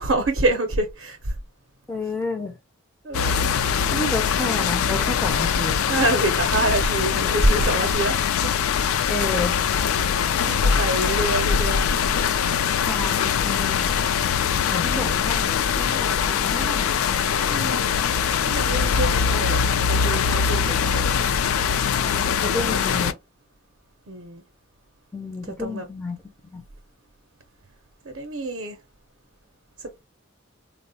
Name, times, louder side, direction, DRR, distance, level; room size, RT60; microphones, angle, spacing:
voice 1, 0.0-1.3 3.0-3.5 5.9-8.2 8.4-8.5 10.1-11.9 14.9-15.2 17.5-18.0 18.4-21.0 22.3-23.1 24.1-24.4 25.5-25.9 28.0-28.8 29.8-30.0, right 2 dB, 55° right, 0.5 m, -27 dB
voice 2, 1.9-2.6 3.9-5.8 9.1-9.6 12.9-13.9 14.7-17.1 22.0-23.2 25.1-26.2 26.4-26.6, left 2 dB, 10° left, 0.4 m, -31 dB
sound 1, 3.1-23.1, left 7 dB, 85° left, 0.3 m, -22 dB
3.5 x 2.0 x 2.7 m
head